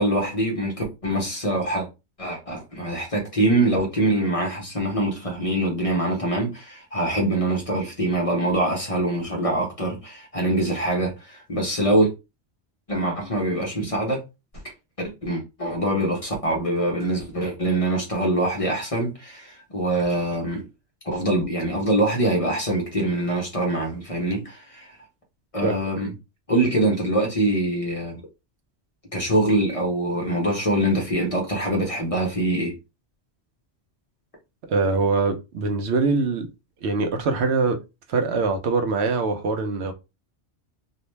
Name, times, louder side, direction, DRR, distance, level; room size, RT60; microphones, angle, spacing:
voice 1, 0.0-1.9 2.2-12.1 12.9-14.2 15.0-20.6 21.0-24.9 25.5-26.1 26.5-28.2 29.1-32.7, right 1 dB, 35° left, 0.7 m, -24 dB
voice 2, 25.6-25.9 34.7-36.5 36.8-37.8 38.1-39.9, right 4 dB, 75° right, 0.9 m, -23 dB
2.5 x 2.1 x 3.1 m
omnidirectional pair, 1.1 m